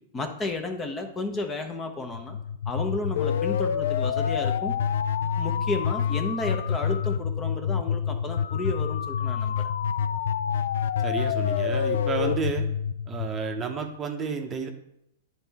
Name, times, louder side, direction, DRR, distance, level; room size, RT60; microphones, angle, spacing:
voice 1, 0.1-2.4 2.7-4.7 5.2-9.7, left 2 dB, 20° left, 5 dB, 0.9 m, -32 dB
sound 1, 2.1-14.0, left 7 dB, 70° left, 0.3 m, -27 dB
voice 2, 11.0-12.7 13.1-14.7, right 5 dB, 20° right, 3 dB, 0.8 m, -31 dB
9.6 x 4.2 x 3.5 m, 0.80 s
hypercardioid pair, 125°, 0 cm